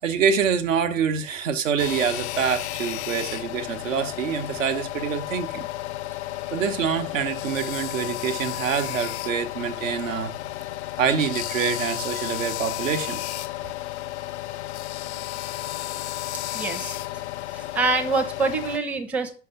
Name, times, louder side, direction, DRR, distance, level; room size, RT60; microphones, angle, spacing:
voice 1, 0.0-5.7 6.5-10.4 11.0-13.2, right 7 dB, 60° right, 1.0 m, -26 dB
sound 1, 1.8-18.8, left 15 dB, 50° left, 0.5 m, -32 dB
voice 2, 16.5-17.0 17.5-19.3, right 3 dB, 5° right, 0.7 m, -25 dB
6.2 x 5.8 x 5.8 m
figure-of-eight pair, 90°, 44 cm